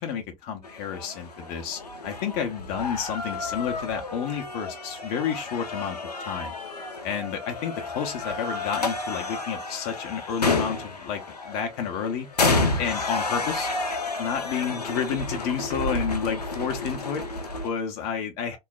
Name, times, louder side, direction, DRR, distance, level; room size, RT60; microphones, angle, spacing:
voice 1, 0.0-12.5 12.8-13.7 14.2-18.6, left 7 dB, 45° left, 0.6 m, -31 dB
sound 1, 0.6-17.7, left 3 dB, 85° left, 0.6 m, -30 dB
3.0 x 2.0 x 2.3 m
figure-of-eight pair, 80°, 20 cm